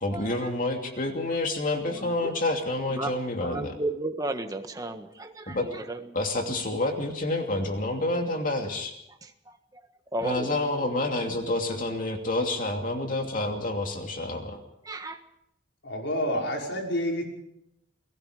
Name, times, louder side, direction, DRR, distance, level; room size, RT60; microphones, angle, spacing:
voice 1, 0.0-3.8 5.5-5.7 6.1-8.9 10.2-14.6, left 2 dB, 45° left, 3 dB, 2.7 m, -28 dB
voice 2, 2.0-2.3 2.9-3.1 3.4-6.0 9.2-9.3 10.1-10.5 14.9-15.2, right 2 dB, 20° right, 6 dB, 1.6 m, -33 dB
voice 3, 15.8-17.2, equal, 65° left, 0 dB, 5.7 m, -28 dB
30.0 x 18.5 x 5.1 m, 0.78 s
head